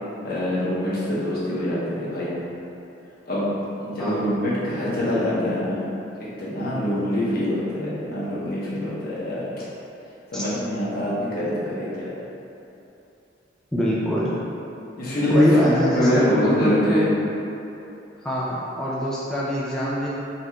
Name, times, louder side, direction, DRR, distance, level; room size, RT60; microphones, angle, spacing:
voice 1, 0.2-2.4 3.2-5.8 6.2-9.4 10.3-12.1 15.0-17.1, equal, 55° left, -9 dB, 0.9 m, -24 dB
voice 2, 13.7-14.3 15.3-17.1 18.2-20.1, equal, 5° left, -8 dB, 0.3 m, -24 dB
4.2 x 3.0 x 2.2 m, 2.8 s
head